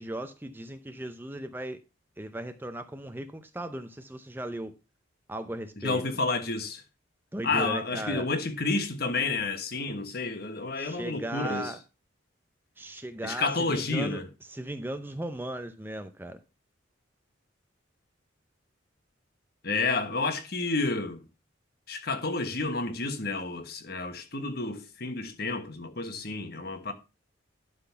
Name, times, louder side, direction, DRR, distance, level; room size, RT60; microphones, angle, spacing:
voice 1, 0.0-1.8 2.2-4.7 5.3-6.0 7.3-8.3 10.7-11.8 12.8-14.2 14.5-16.4, right 1 dB, 10° right, 0.6 m, -37 dB
voice 2, 5.8-6.8 7.4-11.7 13.2-14.3 19.6-21.2 21.9-26.9, left 3 dB, 50° left, 1.3 m, -30 dB
12.0 x 4.0 x 5.7 m
head